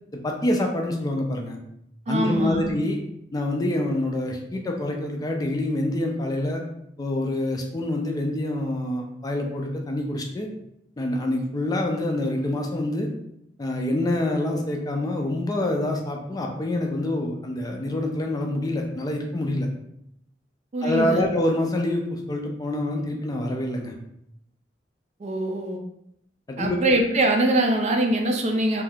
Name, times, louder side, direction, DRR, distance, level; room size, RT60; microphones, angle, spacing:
voice 1, 0.2-1.6 2.1-3.0 3.3-6.6 7.0-10.5 11.0-13.1 13.6-19.7 20.8-23.9 26.5-26.8, left 1 dB, 20° left, 1 dB, 0.4 m, -26 dB
voice 2, 2.1-2.7 20.7-21.2 25.2-25.8 26.6-28.8, right 1 dB, 40° right, 2 dB, 0.4 m, -23 dB
2.6 x 2.3 x 3.4 m, 0.78 s
head